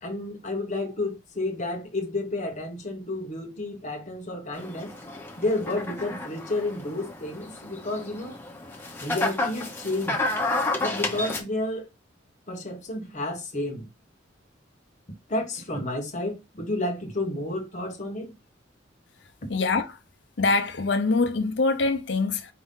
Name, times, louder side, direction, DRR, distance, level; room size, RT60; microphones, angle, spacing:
voice 1, 0.0-4.9 5.4-8.3 9.0-10.2 10.8-11.9 12.5-13.9 15.3-18.3, left 2 dB, 40° left, 1.0 m, -31 dB
sound 1, 4.5-11.4, left 2 dB, 10° left, 0.8 m, -31 dB
voice 2, 19.5-19.9 20.4-22.5, left 3 dB, 65° left, 0.6 m, -24 dB
4.5 x 2.7 x 3.6 m
head